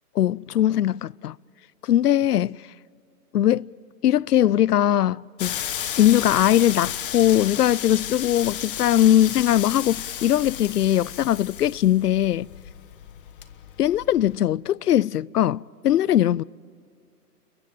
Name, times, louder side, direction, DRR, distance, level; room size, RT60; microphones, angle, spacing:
voice 1, 0.2-1.4 1.8-2.6 3.3-3.7 4.0-5.6 6.0-12.5 13.8-16.4, left 12 dB, 70° left, 0.5 m, -20 dB
sound 1, 5.4-14.4, left 10 dB, 35° left, 1.2 m, -33 dB
29.5 x 22.5 x 7.4 m
hypercardioid pair, 145°, 48 cm